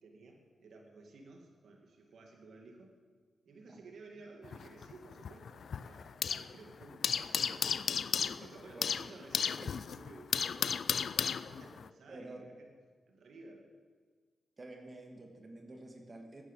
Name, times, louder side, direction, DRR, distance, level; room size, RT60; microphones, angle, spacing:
voice 1, 0.0-2.9 3.5-7.7 8.2-12.7 13.1-13.7, right 3 dB, 80° right, 2 dB, 2.4 m, -54 dB
sound 1, 4.4-6.6 6.8-11.9, left 7 dB, 70° left, 0.4 m, -34 dB
voice 2, 12.1-12.4 14.6-16.4, right 2 dB, 40° right, 2 dB, 2.5 m, -49 dB
15.0 x 10.0 x 7.5 m, 1.5 s
cardioid pair, 70°, 0 cm